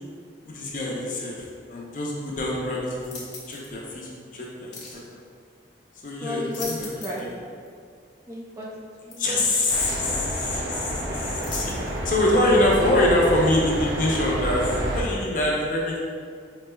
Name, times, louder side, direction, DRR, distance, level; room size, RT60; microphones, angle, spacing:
voice 1, 0.4-1.3 1.7-3.2 3.5-4.8 6.0-7.3 9.2-10.9 11.2-16.0, left 1 dB, 45° left, -4 dB, 0.7 m, -24 dB
sound 1, 3.0-3.7 4.7-5.0 6.3-7.3 7.7-7.8 9.1-9.2 9.8-10.1 11.4-12.1 12.7-12.9, left 4 dB, 80° left, 0.8 m, -39 dB
voice 2, 6.2-7.2 8.3-8.7 9.0-9.4, left 2 dB, 20° right, -4 dB, 0.4 m, -33 dB
sound 2, 9.7-15.0, right 1 dB, 85° right, 0.5 m, -29 dB
5.1 x 3.1 x 2.2 m, 2.2 s
head